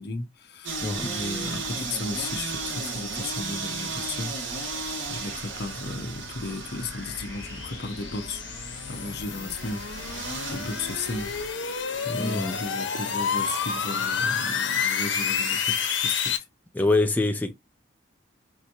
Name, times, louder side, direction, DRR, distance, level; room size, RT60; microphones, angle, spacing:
voice 1, 0.0-8.4 8.9-16.4, left 3 dB, 60° left, 0.9 m, -35 dB
sound 1, 0.6-11.5, right 3 dB, 85° right, 1.5 m, -35 dB
voice 2, 0.8-1.1 12.2-12.6 16.7-17.5, left 2 dB, 10° left, 0.3 m, -24 dB
sound 2, 5.1-16.4, left 6 dB, 80° left, 1.0 m, -30 dB
5.8 x 2.6 x 2.8 m
head